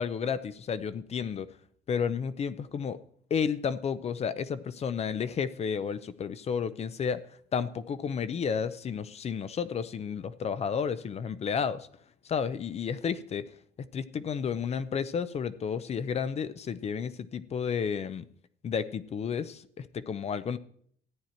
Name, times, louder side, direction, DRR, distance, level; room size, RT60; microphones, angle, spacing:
voice 1, 0.0-1.5 1.9-3.0 3.3-7.2 7.5-11.9 12.2-13.4 13.9-18.3 18.6-20.6, left 6 dB, 40° left, 0.6 m, -32 dB
14.0 x 9.1 x 4.4 m
cardioid pair, 110°, 17 cm